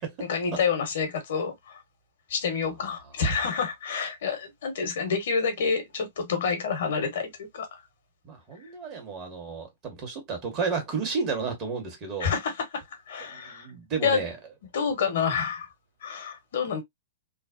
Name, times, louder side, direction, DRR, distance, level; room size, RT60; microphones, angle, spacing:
voice 1, 0.2-1.8 2.3-7.8 12.2-13.7 14.0-14.2 14.7-15.7 16.0-16.8, left 6 dB, 65° left, 1.2 m, -28 dB
voice 2, 8.2-12.3 13.3-14.4, right 5 dB, 35° right, 1.4 m, -32 dB
3.1 x 2.0 x 2.5 m
hypercardioid pair, 120°, 0 cm